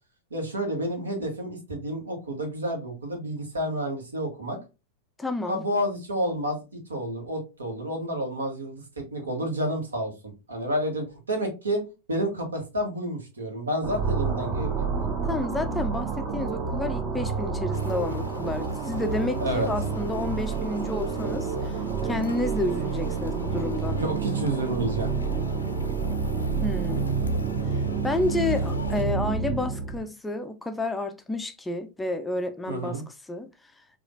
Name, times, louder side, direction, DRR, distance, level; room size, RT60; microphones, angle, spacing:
voice 1, 0.3-4.6 5.5-6.6 6.9-10.1 10.5-11.8 12.1-15.2 19.4-19.7 23.9-25.1 32.7-33.0, right 1 dB, 75° right, 1.2 m, -30 dB
voice 2, 5.2-5.6 15.3-21.8 22.0-24.0 26.6-27.1 28.0-33.0 33.3-33.5, left 2 dB, 10° left, 0.4 m, -30 dB
sound 1, 13.8-30.0, right 5 dB, 35° right, 0.8 m, -29 dB
sound 2, 17.7-29.0, left 4 dB, 75° left, 0.4 m, -42 dB
4.9 x 2.4 x 2.5 m
figure-of-eight pair, 90°, 0 cm